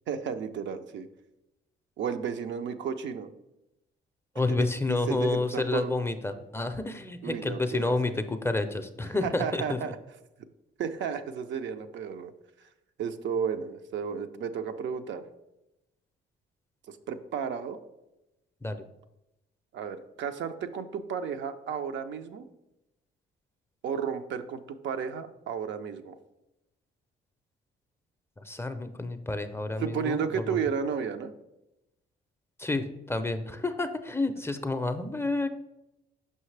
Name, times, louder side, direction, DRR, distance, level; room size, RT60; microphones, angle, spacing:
voice 1, 0.1-1.1 2.0-3.3 4.6-5.9 7.2-8.0 9.2-10.0 10.8-12.3 13.0-15.2 16.9-17.8 19.7-22.5 23.8-26.2 29.8-31.3, right 7 dB, 70° right, 8 dB, 0.5 m, -33 dB
voice 2, 4.4-9.8 18.6-18.8 28.4-30.6 32.6-35.5, left 2 dB, 10° left, 8 dB, 0.4 m, -30 dB
5.7 x 5.5 x 3.2 m, 0.91 s
cardioid pair, 90°, 20 cm